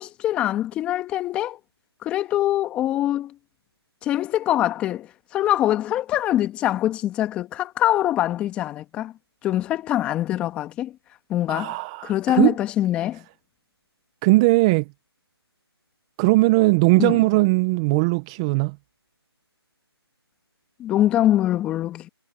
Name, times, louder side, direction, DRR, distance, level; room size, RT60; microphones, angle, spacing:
voice 1, 0.0-1.6 2.0-3.4 4.0-9.1 9.4-11.0 11.3-11.8 12.0-13.2 17.0-17.2 20.8-22.1, left 13 dB, 10° left, 1.8 m, -23 dB
voice 2, 11.5-12.5 14.2-14.8 16.2-18.8, right 22 dB, 10° right, 1.1 m, -19 dB
figure-of-eight pair, 160°, 14 cm